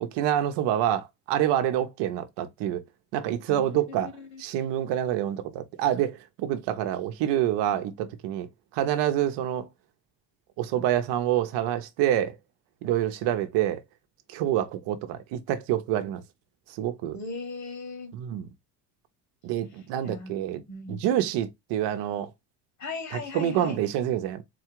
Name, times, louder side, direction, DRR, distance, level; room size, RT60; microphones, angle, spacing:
voice 1, 0.0-2.8 3.1-4.1 4.4-8.5 8.7-9.7 10.6-12.4 12.8-13.8 14.3-16.2 16.8-17.2 18.1-18.5 19.4-20.6 20.9-22.3 23.1-24.4, right 11 dB, 75° right, 0.9 m, -27 dB
voice 2, 3.5-4.4 17.1-18.1 20.0-21.0 22.8-23.8, left 3 dB, 40° left, 1.7 m, -38 dB
4.2 x 2.4 x 4.6 m
cardioid pair, 110°, 42 cm